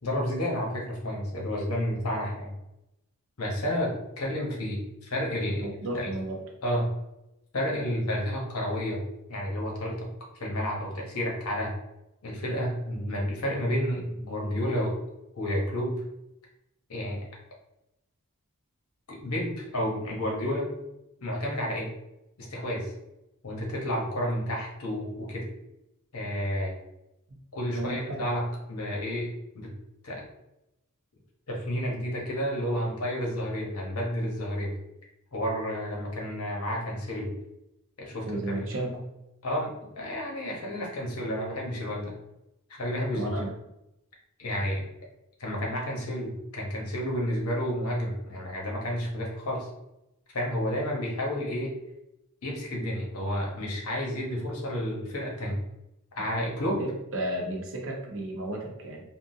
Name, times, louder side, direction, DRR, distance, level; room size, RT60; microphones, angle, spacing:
voice 1, 0.0-2.5 3.4-5.7 5.9-6.1 6.6-6.9 7.5-9.0 9.3-10.1 10.4-11.7 12.2-14.9 15.4-16.0 16.9-17.2 19.1-20.7 21.2-21.9 22.4-22.9 23.4-25.4 26.1-26.7 27.5-29.3 29.5-29.7 30.0-30.2 31.5-34.7 35.3-37.3 38.0-38.6 39.4-42.1 42.7-43.3 44.4-44.9 45.4-49.7 50.3-51.8 52.4-55.6 56.2-56.8, equal, 70° left, -2 dB, 0.9 m, -30 dB
voice 2, 5.6-6.4 27.7-28.2 38.3-39.0 43.1-43.5 56.7-59.0, right 1 dB, 60° right, 0 dB, 0.8 m, -33 dB
3.7 x 2.2 x 2.6 m, 0.88 s
head